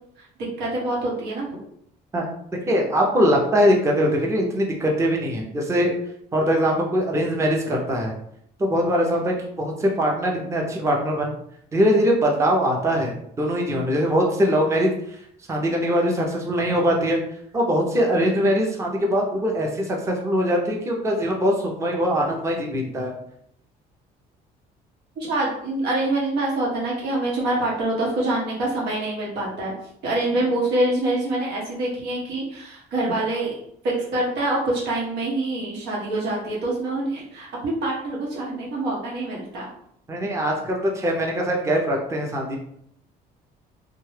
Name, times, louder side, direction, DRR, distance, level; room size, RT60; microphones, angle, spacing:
voice 1, 0.6-1.6 25.2-29.7 30.0-33.5 33.8-39.7, right 2 dB, 85° right, -3 dB, 1.1 m, -25 dB
voice 2, 2.7-5.9 6.3-8.1 8.6-11.3 11.7-14.9 15.5-17.2 17.5-23.2 40.1-42.6, equal, 15° right, 0 dB, 0.6 m, -22 dB
2.7 x 2.2 x 3.2 m, 0.70 s
cardioid pair, 110°, 17 cm